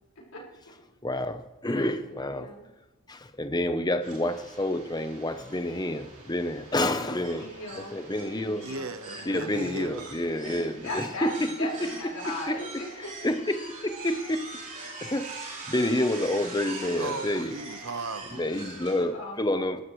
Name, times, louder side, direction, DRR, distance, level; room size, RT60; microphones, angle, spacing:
voice 1, 0.1-0.7 1.8-2.7 6.9-8.0 8.4-8.9 10.4-13.3 19.1-19.7, left 1 dB, 75° left, -4 dB, 5.0 m, -38 dB
voice 2, 1.0-2.5 3.1-7.5 7.9-8.7 9.3-11.7 12.5-12.6 13.2-14.5 14.7-17.6 18.3-19.8, left 1 dB, 20° left, 9 dB, 0.8 m, -29 dB
sound 1, 4.0-19.0, right 3 dB, 35° right, 3.6 m, -43 dB
voice 3, 8.6-10.1 17.0-18.5, right 3 dB, 75° right, 9 dB, 1.1 m, -36 dB
22.5 x 12.5 x 3.2 m, 1.1 s
head